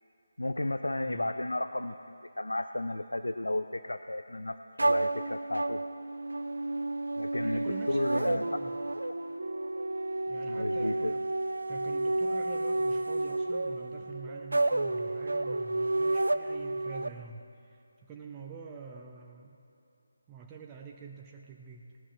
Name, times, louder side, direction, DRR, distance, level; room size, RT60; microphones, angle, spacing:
voice 1, 0.4-5.8 7.2-8.5 10.5-11.1, left 1 dB, 75° left, 10 dB, 0.5 m, -33 dB
sound 1, 4.8-17.1, right 2 dB, 70° right, 0.5 m, -31 dB
voice 2, 7.4-8.7 10.3-11.3 11.7-19.6 20.3-22.0, right 5 dB, 15° right, 0 dB, 0.7 m, -46 dB
19.0 x 14.0 x 3.2 m, 2.8 s
figure-of-eight pair, 155°, 0 cm